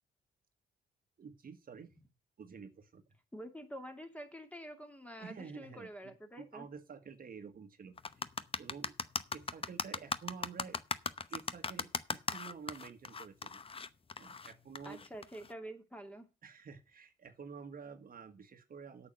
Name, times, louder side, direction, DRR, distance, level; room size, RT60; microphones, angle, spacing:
voice 1, 1.2-1.9 2.4-3.0 5.2-8.3 8.6-8.9 9.3-10.8 11.3-13.6 14.2-15.0 16.4-19.1, right 6 dB, 45° right, 8 dB, 1.6 m, -50 dB
voice 2, 3.3-6.7 14.8-16.3, right 1 dB, 5° left, 5 dB, 2.4 m, -47 dB
sound 1, 8.0-15.5, left 5 dB, 30° left, 0.8 m, -38 dB
8.6 x 6.9 x 7.7 m, 0.30 s
cardioid pair, 90°, 20 cm